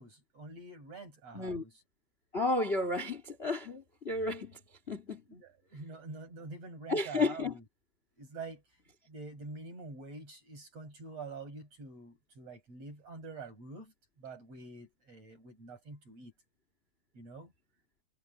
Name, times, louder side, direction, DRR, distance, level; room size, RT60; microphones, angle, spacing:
voice 1, 0.0-1.8 5.3-7.6 8.2-8.6 9.1-16.3 17.1-17.5, right 3 dB, 40° right, 8.9 m, -46 dB
voice 2, 2.3-4.6 4.9-5.2 6.9-7.5, left 2 dB, 20° left, 2.4 m, -32 dB
omnidirectional pair, 4.5 m